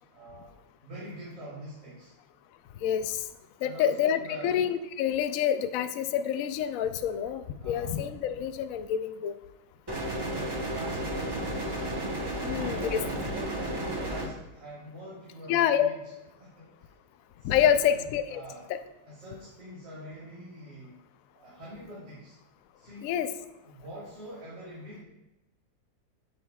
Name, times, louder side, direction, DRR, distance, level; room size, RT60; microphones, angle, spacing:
voice 1, 0.1-2.1 3.6-4.5 7.6-8.0 10.2-12.0 12.4-16.1 16.4-16.9 17.4-18.0 18.3-18.7 19.0-21.0 21.3-22.4 22.7-23.2 23.6-25.0, equal, 80° right, -9 dB, 2.6 m, -45 dB
voice 2, 2.8-3.3 3.6-9.4 12.4-13.0 15.5-15.9 17.4-18.4 18.7-18.8 23.0-23.3, left 9 dB, 80° left, 10 dB, 0.7 m, -27 dB
sound 1, 9.9-14.3, right 1 dB, 25° right, 0.5 m, -32 dB
8.8 x 7.9 x 2.3 m, 0.99 s
omnidirectional pair, 1.9 m